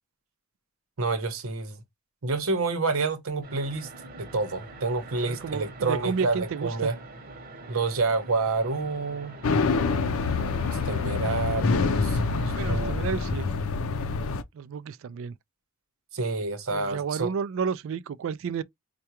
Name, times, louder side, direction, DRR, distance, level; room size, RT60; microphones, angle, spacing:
voice 1, 1.0-1.8 2.2-3.9 4.2-6.9 7.7-10.1 10.6-12.9 16.1-17.3, right 3 dB, 90° right, 0.9 m, -29 dB
sound 1, 3.4-12.6, right 2 dB, 45° right, 0.8 m, -44 dB
voice 2, 5.2-6.9 12.6-13.5 14.5-15.4 16.7-18.6, right 6 dB, 70° right, 0.3 m, -31 dB
sound 2, 9.4-14.4, left 4 dB, 85° left, 0.5 m, -26 dB
4.6 x 2.2 x 2.9 m
head